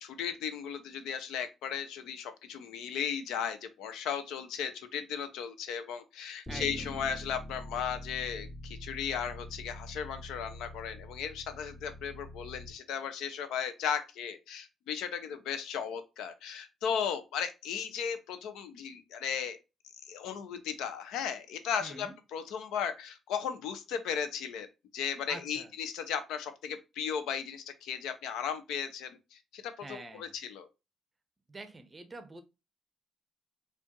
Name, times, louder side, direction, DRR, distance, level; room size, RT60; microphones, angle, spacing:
voice 1, 0.0-19.6 20.1-24.7 24.9-30.7, left 7 dB, 90° left, 0.5 m, -36 dB
Bass guitar, 6.5-12.7, left 1 dB, 30° left, 2.1 m, -45 dB
voice 2, 6.5-7.0 21.8-22.2 25.3-25.7 29.8-30.4 31.5-32.4, right 2 dB, 25° right, 0.7 m, -46 dB
4.4 x 2.4 x 2.8 m
cardioid pair, 90°, 0 cm